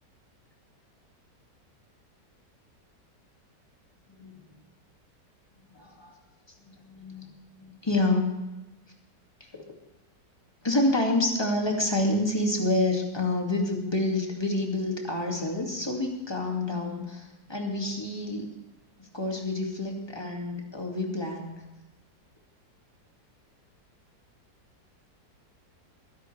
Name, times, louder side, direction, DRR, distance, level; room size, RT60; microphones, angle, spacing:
voice 1, 5.7-6.2 6.6-7.3 7.6-8.3 9.5-9.6 10.6-18.5 19.0-21.5, left 2 dB, 15° left, 1 dB, 2.2 m, -28 dB
22.0 x 10.5 x 3.4 m, 1.0 s
omnidirectional pair, 1.9 m